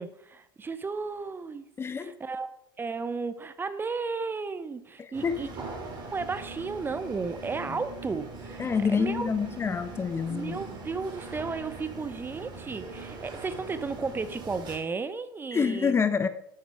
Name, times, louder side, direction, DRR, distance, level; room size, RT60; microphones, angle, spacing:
voice 1, 0.0-1.7 2.0-2.5 2.8-5.5 6.1-9.3 10.3-16.0, right 4 dB, 15° right, 12 dB, 0.9 m, -34 dB
voice 2, 1.8-2.2 5.0-5.5 8.6-10.6 15.5-16.3, left 5 dB, 20° left, 12 dB, 0.8 m, -27 dB
sound 1, 5.1-14.8, right 3 dB, 35° right, 4.0 m, -41 dB
12.5 x 8.2 x 4.8 m, 0.74 s
figure-of-eight pair, 80°, 12 cm